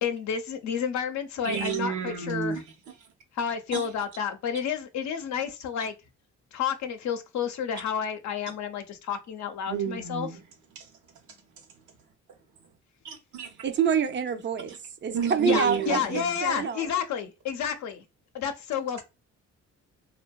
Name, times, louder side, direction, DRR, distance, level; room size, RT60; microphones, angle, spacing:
voice 1, 0.0-2.6 3.3-5.9 6.5-10.3 15.5-18.0 18.3-19.0, left 7 dB, 70° left, 0.6 m, -30 dB
voice 2, 1.4-2.6 3.7-3.9 9.7-10.4 10.8-10.9 13.0-13.5 14.7-14.8 15.1-16.4, right 7 dB, 80° right, 0.8 m, -31 dB
voice 3, 13.6-16.9, right 6 dB, 40° right, 0.4 m, -27 dB
2.6 x 2.2 x 2.2 m
cardioid pair, 90°, 30 cm